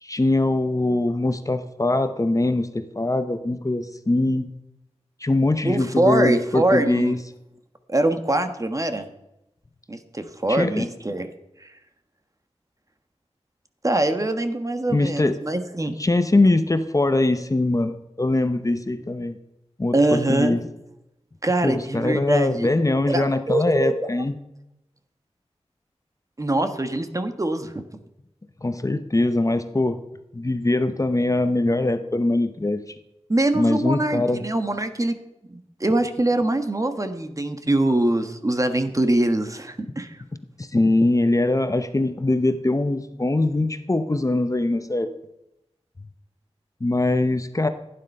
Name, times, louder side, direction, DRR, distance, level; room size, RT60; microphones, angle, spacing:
voice 1, 0.0-4.5 5.2-7.2 10.5-10.9 14.9-15.4 16.0-19.4 19.8-20.6 21.6-24.4 28.6-30.0 30.3-33.0 33.5-34.4 40.6-45.1 46.8-47.7, left 2 dB, 30° left, 9 dB, 0.9 m, -22 dB
voice 2, 5.6-7.2 7.9-9.1 9.9-11.3 11.6-11.7 13.8-15.9 19.9-20.6 21.4-22.7 23.1-23.9 26.4-27.8 33.3-35.1 35.5-40.2, right 1 dB, 30° right, 8 dB, 1.3 m, -23 dB
15.5 x 9.9 x 5.5 m, 0.88 s
wide cardioid pair, 75°, 11 cm